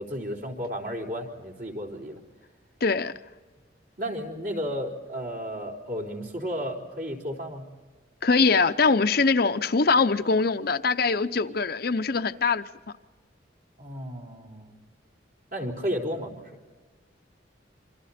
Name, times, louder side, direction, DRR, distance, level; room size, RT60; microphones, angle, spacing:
voice 1, 0.0-2.2 4.0-7.7 13.8-14.8 15.5-16.5, equal, 55° right, 4.1 m, -33 dB
voice 2, 2.8-3.1 8.2-12.7, left 4 dB, 55° left, 0.7 m, -22 dB
28.5 x 25.5 x 4.3 m
head